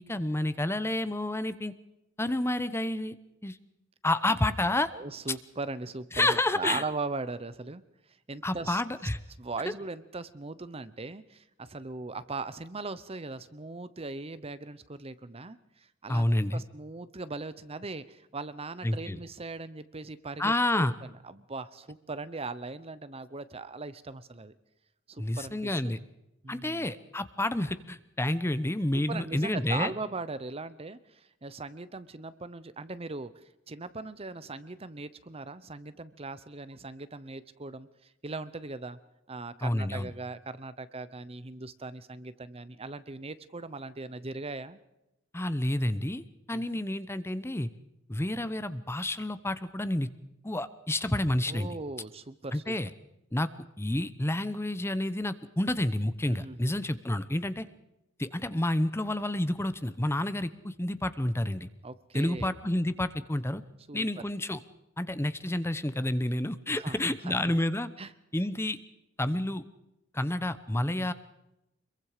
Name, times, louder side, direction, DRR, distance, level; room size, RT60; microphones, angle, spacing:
voice 1, 0.0-1.7 2.2-3.1 3.4-3.6 4.0-4.9 6.1-6.8 8.4-9.2 16.1-16.6 18.8-19.2 20.4-20.9 25.2-26.0 26.5-29.9 39.6-40.1 45.3-46.2 46.5-47.7 48.1-50.1 50.4-51.7 52.5-52.9 53.3-53.5 53.8-57.7 58.2-61.7 62.1-63.6 63.9-64.6 65.0-67.9 68.3-68.8 69.2-69.6 70.1-71.1, left 1 dB, 15° left, 13 dB, 0.8 m, -29 dB
voice 2, 4.9-7.8 8.3-8.8 9.4-24.5 25.1-25.9 26.4-26.9 28.9-39.0 39.3-44.8 46.5-46.6 51.5-52.7 56.3-56.7 61.8-62.5 63.9-64.1 66.7-67.0 67.2-67.5 68.0-68.1 70.8-71.1, right 3 dB, 30° right, 14 dB, 0.9 m, -39 dB
25.5 x 22.5 x 5.0 m, 0.89 s
head